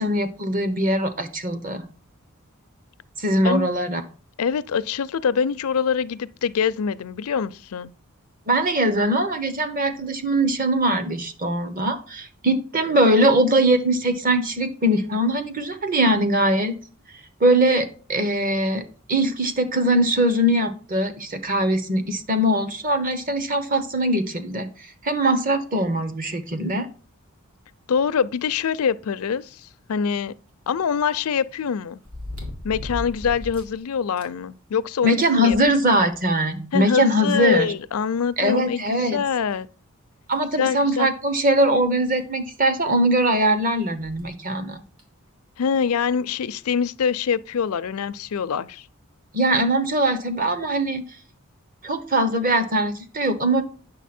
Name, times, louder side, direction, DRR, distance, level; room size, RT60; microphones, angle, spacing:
voice 1, 0.0-1.8 3.2-4.0 8.5-16.8 17.4-18.8 19.1-24.7 25.0-26.9 35.0-37.7 38.4-39.2 40.3-44.8 49.3-51.0 51.8-53.6, right 1 dB, 40° right, 1.0 m, -21 dB
voice 2, 4.4-7.9 27.9-30.3 30.7-32.0 32.6-35.6 36.7-39.7 40.6-41.1 45.6-48.9, left 6 dB, 80° left, 0.4 m, -24 dB
sound 1, 30.1-30.2 32.0-33.8 34.2-34.3 34.7-34.8 35.2-36.3 37.3-37.4 38.8-38.9 39.5-39.6 40.3-40.5 41.9-42.0 42.2-42.3 44.0-44.3 45.0-45.1, left 1 dB, 70° right, 2.8 m, -36 dB
9.1 x 6.6 x 4.3 m
head